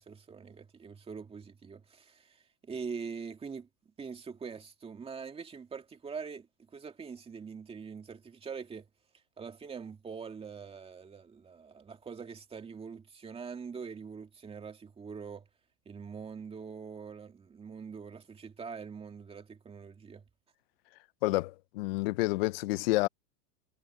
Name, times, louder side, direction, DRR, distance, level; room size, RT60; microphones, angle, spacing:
voice 1, 0.0-8.9 9.4-15.5 15.9-20.2, right 5 dB, 10° right, 2.3 m, -43 dB
voice 2, 21.2-23.1, left 20 dB, 40° left, 0.4 m, -29 dB
supercardioid pair, 155°, 49 cm